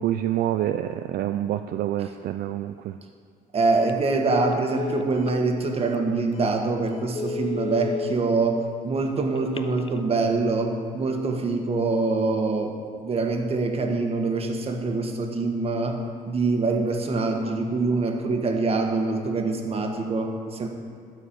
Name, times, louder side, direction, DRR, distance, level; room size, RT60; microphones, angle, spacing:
voice 1, 0.0-2.9, right 12 dB, 65° right, 8 dB, 0.4 m, -27 dB
voice 2, 3.5-12.8 13.0-20.7, right 3 dB, 35° right, 3 dB, 1.5 m, -25 dB
Telephone, 3.7-4.0 4.3-5.4 5.9-6.0 6.5-6.6 7.0-8.1 9.4-10.0, left 5 dB, 30° left, 0.5 m, -32 dB
13.0 x 4.8 x 8.8 m, 2.2 s
cardioid pair, 110°, 17 cm